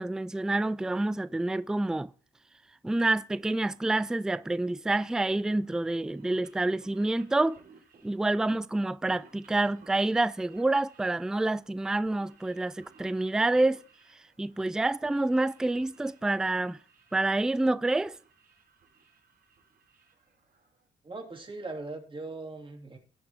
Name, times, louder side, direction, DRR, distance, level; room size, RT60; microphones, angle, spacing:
voice 1, 0.0-2.1 2.8-7.6 8.0-13.8 14.4-16.8 17.1-18.2, right 2 dB, 5° right, 0.4 m, -28 dB
sound 1, 3.4-20.9, right 5 dB, 50° right, 3.8 m, -60 dB
voice 2, 21.0-23.0, right 2 dB, 25° right, 2.9 m, -40 dB
17.5 x 6.0 x 3.6 m
cardioid pair, 90°, 20 cm